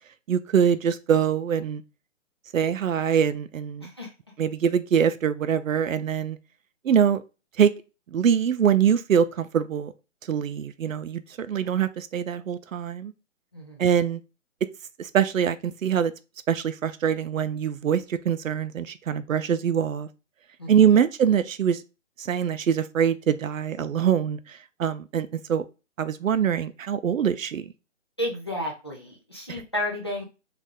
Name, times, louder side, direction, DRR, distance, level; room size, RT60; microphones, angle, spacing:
voice 1, 0.3-1.8 2.5-3.9 4.4-6.4 6.8-7.2 7.6-7.7 8.1-9.9 10.3-13.1 13.8-14.2 15.0-16.1 16.5-20.1 20.7-21.8 22.2-25.6 26.0-27.7, right 8 dB, 90° right, 0.6 m, -23 dB
voice 2, 13.5-13.9 20.6-20.8 28.2-30.2, left 1 dB, 20° left, 0.4 m, -32 dB
3.3 x 2.3 x 3.5 m
hypercardioid pair, 155°, 39 cm